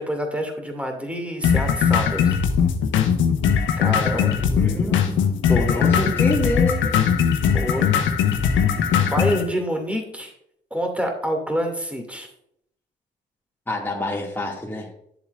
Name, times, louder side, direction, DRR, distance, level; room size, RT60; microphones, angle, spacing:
voice 1, 0.0-2.3 3.8-4.3 7.5-7.9 9.0-10.3 10.7-12.3, equal, 5° right, 3 dB, 2.4 m, -27 dB
sound 1, 1.4-9.4, left 7 dB, 70° left, 0.9 m, -20 dB
voice 2, 3.9-5.2 5.5-6.9 13.7-14.9, left 1 dB, 10° left, -3 dB, 2.2 m, -27 dB
11.0 x 7.1 x 2.6 m, 0.73 s
hypercardioid pair, 45°, 21 cm